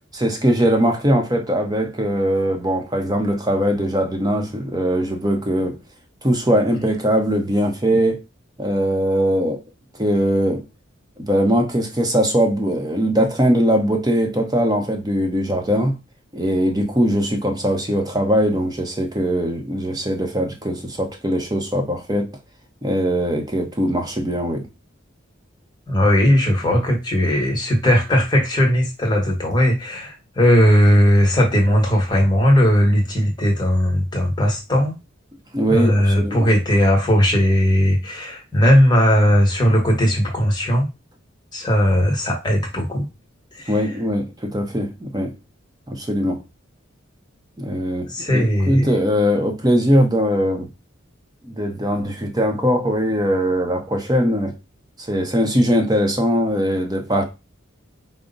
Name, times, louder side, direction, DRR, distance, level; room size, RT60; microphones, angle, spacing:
voice 1, 0.1-5.8 6.2-8.2 8.6-9.6 10.0-10.6 11.2-16.0 16.3-22.3 22.8-24.7 35.5-36.5 43.7-45.3 45.9-46.4 47.6-50.7 51.4-54.5 55.1-57.3, equal, 20° right, 0.7 m, -20 dB
voice 2, 25.9-34.9 35.7-40.9 41.5-43.1 43.6-43.7 48.1-48.9, equal, 20° left, 1.1 m, -17 dB
4.8 x 2.0 x 3.9 m
head